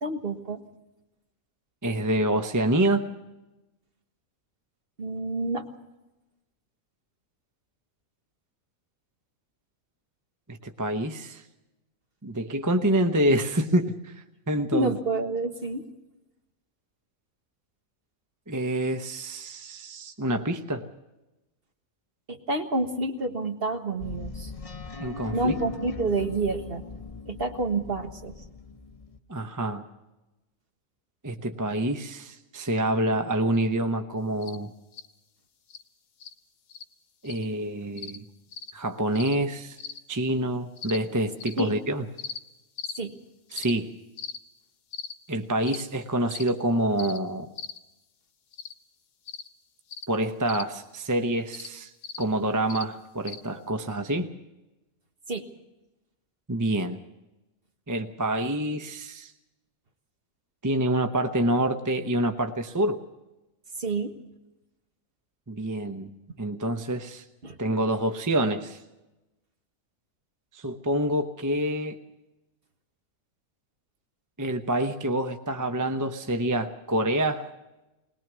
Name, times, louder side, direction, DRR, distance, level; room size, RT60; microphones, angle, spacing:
voice 1, 0.0-0.6 5.0-5.7 14.7-15.9 22.3-24.5 25.3-26.8 27.3-28.3 41.6-41.7 43.0-43.1 55.3-55.4 63.8-64.1 67.4-67.6, right 2 dB, 45° right, 5 dB, 1.6 m, -28 dB
voice 2, 1.8-3.0 10.5-11.4 12.2-14.9 18.5-20.8 25.0-25.5 29.3-29.8 31.2-34.7 37.2-38.2 38.7-39.8 40.1-42.0 43.5-43.9 45.3-47.5 50.1-51.9 52.2-54.3 56.5-57.0 57.9-59.3 60.6-63.0 65.5-66.1 66.4-67.2 67.6-68.8 70.5-72.0 74.4-77.5, right 1 dB, 15° right, 6 dB, 0.8 m, -27 dB
sound 1, 24.0-29.2, left 3 dB, 30° left, 0.9 m, -39 dB
sound 2, 34.4-34.6 34.9-35.1 35.7-35.8 36.2-36.3 36.7-36.8 37.2-37.4 38.0-38.2 38.5-38.7 39.1-39.3 39.8-40.0 40.8-41.0 41.4-41.6 42.2-42.4 42.8-43.0 43.5-43.7 44.2-44.4 44.9-45.1 45.6-45.8 46.3-46.5 47.0-47.2 47.6-47.8 48.5-48.7 49.3-49.5 49.9-50.1 50.5-50.6 51.5-51.7 52.0-52.2 52.7-52.8 53.3-53.4, left 6 dB, 75° left, 1.5 m, -38 dB
21.0 x 20.0 x 6.2 m, 1.0 s
omnidirectional pair, 1.4 m